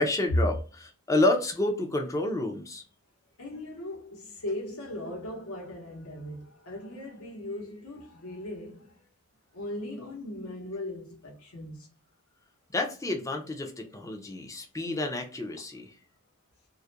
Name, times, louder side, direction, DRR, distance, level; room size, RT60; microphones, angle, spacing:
voice 1, 0.0-2.8 12.7-15.9, left 2 dB, 15° left, 0.4 m, -29 dB
voice 2, 3.4-9.0 9.5-11.9, left 1 dB, 70° left, 0.9 m, -39 dB
2.3 x 2.1 x 2.7 m
head